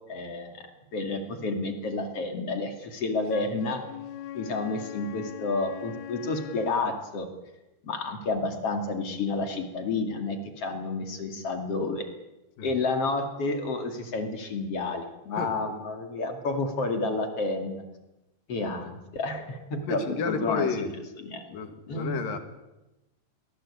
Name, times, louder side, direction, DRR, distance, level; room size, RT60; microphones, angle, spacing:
voice 1, 0.1-0.7 0.9-3.8 4.3-7.3 7.8-12.1 12.6-17.8 18.5-20.0 20.3-20.7 21.2-21.4 21.9-22.2, left 3 dB, 45° left, 5 dB, 2.9 m, -30 dB
Wind instrument woodwind instrument, 3.2-6.8, left 10 dB, 80° left, 3.0 m, -41 dB
voice 2, 19.9-20.9 21.5-22.4, left 5 dB, 65° left, 7 dB, 3.7 m, -31 dB
23.5 x 19.0 x 8.5 m, 0.98 s
omnidirectional pair, 4.5 m